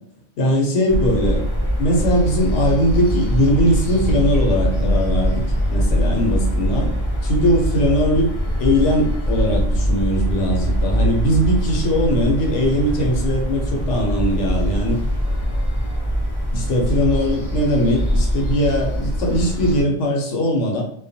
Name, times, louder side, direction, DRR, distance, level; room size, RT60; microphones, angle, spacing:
voice 1, 0.4-1.4 1.8-6.9 7.2-8.3 8.6-15.0 16.5-20.8, equal, 75° left, 0 dB, 1.0 m, -20 dB
sound 1, 0.9-19.8, equal, 40° left, 0.4 m, -22 dB
2.2 x 2.2 x 2.6 m, 0.66 s
omnidirectional pair, 1.2 m